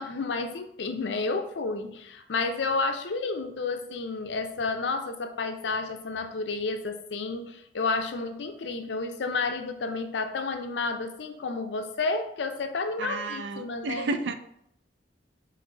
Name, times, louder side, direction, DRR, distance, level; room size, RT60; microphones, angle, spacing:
voice 1, 0.0-14.1, left 3 dB, 80° left, 7 dB, 0.5 m, -31 dB
voice 2, 13.0-14.3, right 3 dB, 85° right, 9 dB, 0.4 m, -31 dB
3.9 x 2.9 x 4.0 m, 0.74 s
head